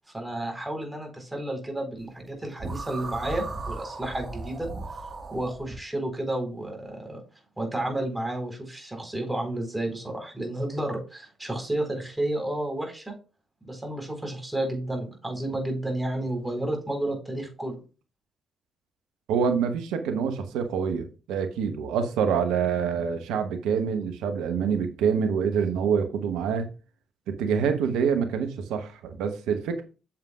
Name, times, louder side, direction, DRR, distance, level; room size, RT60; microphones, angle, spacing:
voice 1, 0.1-4.7 5.3-7.2 7.6-13.1 13.6-17.8, right 1 dB, 15° right, 4.3 m, -31 dB
sound 1, 2.6-5.8, right 3 dB, 45° right, 1.7 m, -36 dB
voice 2, 19.3-26.7 27.3-29.8, right 6 dB, 75° right, 1.0 m, -26 dB
8.7 x 6.9 x 2.4 m
hypercardioid pair, 40°, 0 cm